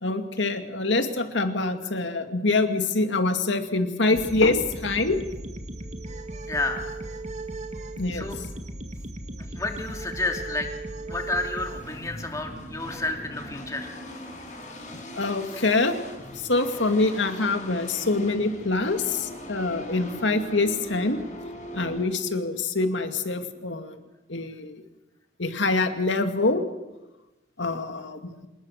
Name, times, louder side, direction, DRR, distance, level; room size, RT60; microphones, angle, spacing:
voice 1, 0.0-5.2 8.0-8.3 15.2-16.0 16.5-21.2 21.7-23.9 24.3-24.8 25.4-26.6 27.6-28.5, left 3 dB, 90° left, 7 dB, 2.2 m, -25 dB
sound 1, 4.1-11.8, right 2 dB, 40° right, 2.0 m, -36 dB
voice 2, 6.5-6.9 8.1-8.4 9.5-10.7 11.1-13.9, left 2 dB, 15° left, 3 dB, 2.8 m, -30 dB
sound 2, 11.7-22.1, left 1 dB, 40° left, 7.0 m, -40 dB
27.5 x 19.5 x 6.6 m, 1.0 s
head